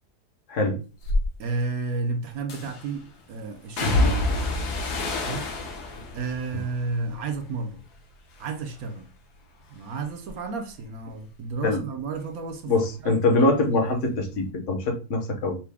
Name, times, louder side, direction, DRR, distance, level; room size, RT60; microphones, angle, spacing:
voice 1, 0.5-0.8 11.6-11.8 12.7-15.6, left 2 dB, 55° left, 1.1 m, -23 dB
sound 1, 1.0-1.3 2.5-3.0 3.8-8.0 8.3-8.9 9.3-12.6 12.9-14.0 14.3-14.4, left 2 dB, 70° left, 1.4 m, -29 dB
voice 2, 1.4-4.3 5.2-5.5 6.1-7.8 8.4-9.1 9.7-12.7 13.0-13.2, right 3 dB, 65° right, 1.0 m, -32 dB
5.7 x 2.2 x 3.4 m
omnidirectional pair, 1.8 m